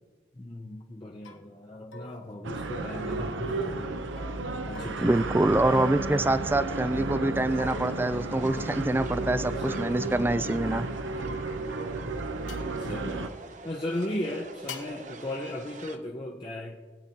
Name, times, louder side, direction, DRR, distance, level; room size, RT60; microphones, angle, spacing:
voice 1, 0.3-4.1 4.7-5.2 9.4-10.0 12.8-13.4 13.6-16.8, left 1 dB, 25° left, -1 dB, 0.7 m, -36 dB
sound 1, 0.6-0.8 1.2-1.5 1.9-3.3 4.2-6.4 7.6-9.0 10.5-11.8 12.5-12.7 14.7-15.1, left 3 dB, 90° left, 1.2 m, -47 dB
sound 2, 2.4-13.3, right 2 dB, 85° right, 0.8 m, -33 dB
voice 2, 5.0-10.9, right 2 dB, 10° right, 13 dB, 0.3 m, -25 dB
sound 3, 7.5-16.0, right 3 dB, 40° right, 0.7 m, -46 dB
22.5 x 8.7 x 2.8 m, 1.4 s
head